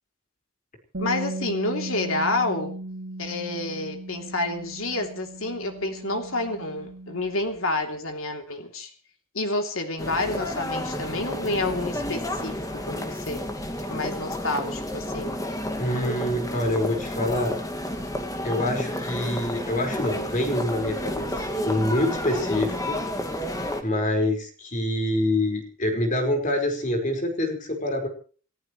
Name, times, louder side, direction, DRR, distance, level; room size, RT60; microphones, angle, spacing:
Bass guitar, 0.9-7.2, right 2 dB, 70° right, 2.8 m, -36 dB
voice 1, 1.0-2.8 3.2-8.9 9.3-13.4 13.9-15.4, left 2 dB, 80° left, 4 dB, 3.1 m, -29 dB
sound 1, 10.0-23.8, left 1 dB, 15° left, 2.1 m, -31 dB
voice 2, 15.8-17.5 18.4-23.0 23.6-28.1, left 1 dB, 35° left, 4 dB, 5.0 m, -26 dB
29.5 x 14.5 x 3.2 m, 0.41 s
head